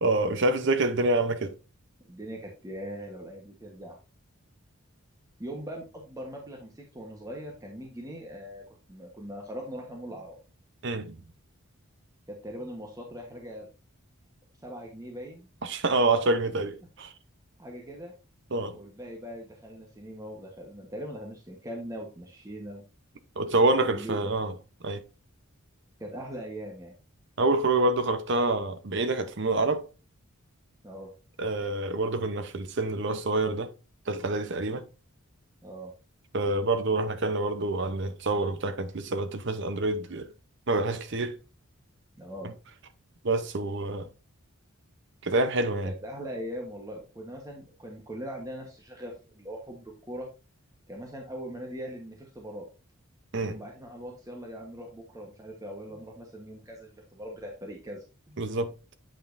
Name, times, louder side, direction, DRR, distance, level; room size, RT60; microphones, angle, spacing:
voice 1, 0.0-1.5 10.8-11.2 15.6-17.1 18.5-18.8 23.4-24.5 24.8-25.0 27.4-29.9 31.4-33.7 34.1-34.8 36.3-40.3 40.7-41.4 42.4-42.5 43.2-44.1 45.2-45.9 53.3-53.6 58.4-58.7, right 2 dB, 55° right, 0.7 m, -27 dB
voice 2, 2.0-4.0 5.4-10.4 12.3-13.7 14.6-15.5 17.6-18.1 18.7-22.8 23.9-24.3 26.0-26.9 30.8-31.1 35.6-35.9 42.2-42.5 45.8-50.3 50.9-52.7 53.4-58.4, equal, 15° right, 1.1 m, -41 dB
8.5 x 5.5 x 2.6 m
head